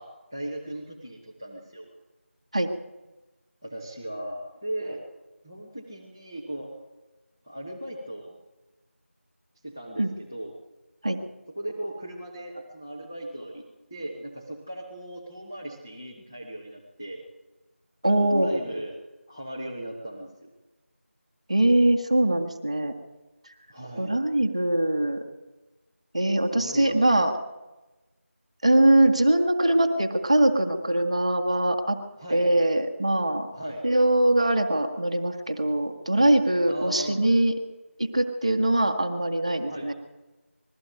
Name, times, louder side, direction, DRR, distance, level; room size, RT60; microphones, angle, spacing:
voice 1, 0.0-1.9 3.6-5.0 5.4-6.7 7.4-8.4 9.6-10.5 11.5-13.6 13.9-17.2 18.1-19.0 19.3-20.5 23.7-24.2 26.5-27.1 32.2-32.5 33.5-33.9 36.7-37.2 39.6-39.9, right 1 dB, 5° right, -1 dB, 1.2 m, -37 dB
voice 2, 18.0-18.5 21.5-22.9 24.0-25.2 26.1-27.3 28.6-32.0 32.3-33.5 33.8-37.5 38.0-39.9, right 1 dB, 25° right, 6 dB, 1.7 m, -22 dB
20.5 x 14.0 x 9.1 m, 1.1 s
figure-of-eight pair, 175°, 7 cm